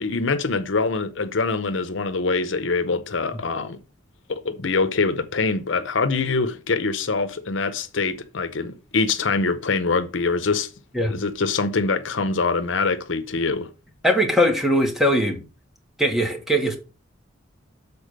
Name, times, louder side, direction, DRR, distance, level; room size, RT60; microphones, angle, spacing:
voice 1, 0.0-3.8 4.3-10.7 11.1-13.7, left 4 dB, 70° left, 0.7 m, -24 dB
voice 2, 14.0-15.4 16.0-16.8, equal, ahead, 1.5 m, -20 dB
7.0 x 4.1 x 6.5 m
head